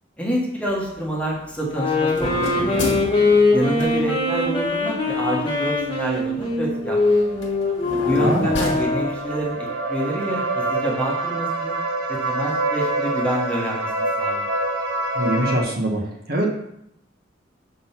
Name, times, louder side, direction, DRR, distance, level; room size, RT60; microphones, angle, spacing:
voice 1, 0.2-3.1 3.5-7.1 8.0-11.8 12.1-13.9 14.2-14.5, right 1 dB, 5° left, -3 dB, 1.2 m, -27 dB
sound 1, 0.7-9.6, left 2 dB, 65° left, 1.4 m, -34 dB
sound 2, 1.7-9.3, left 2 dB, 25° left, 1.2 m, -22 dB
sound 3, 6.3-15.6, right 2 dB, 90° right, 1.0 m, -27 dB
voice 2, 8.1-8.6 15.1-16.5, right 1 dB, 50° right, 0 dB, 1.2 m, -23 dB
5.9 x 3.7 x 5.7 m, 0.78 s
head